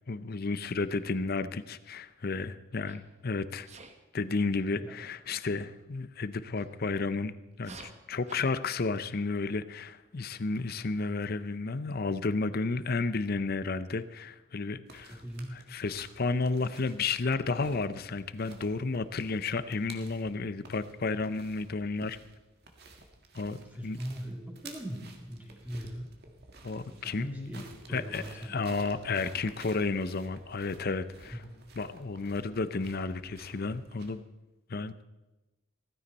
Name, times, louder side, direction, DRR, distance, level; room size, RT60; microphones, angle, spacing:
voice 1, 0.1-3.7 4.1-15.2 15.7-22.2 23.3-24.0 26.6-27.6 27.9-31.4 31.8-34.2 34.7-35.0, left 3 dB, 50° left, 14 dB, 0.6 m, -32 dB
Sneeze, 2.9-3.1 3.7-4.0 6.5-6.7 7.5-8.4, right 3 dB, 35° right, 1.3 m, -49 dB
sound 1, 14.9-34.1, right 3 dB, 50° right, 1.7 m, -53 dB
voice 2, 15.1-15.5 23.4-26.1 26.9-28.8 31.3-31.4, equal, 10° right, -1 dB, 2.8 m, -41 dB
16.0 x 15.0 x 4.2 m, 1.1 s
head